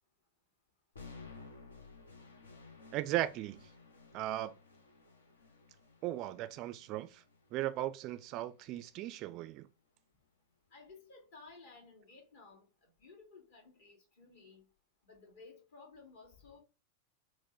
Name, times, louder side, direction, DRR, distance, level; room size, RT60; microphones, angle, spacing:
sound 1, 0.9-9.0, left 4 dB, 70° left, 0.8 m, -56 dB
voice 1, 2.9-3.6 4.1-4.5 6.0-7.2 7.5-9.7, right 14 dB, 40° right, 0.4 m, -37 dB
voice 2, 10.7-12.7 13.0-14.6 15.1-16.6, left 4 dB, 55° left, 1.7 m, -56 dB
4.3 x 2.1 x 4.4 m
figure-of-eight pair, 90°, 0 cm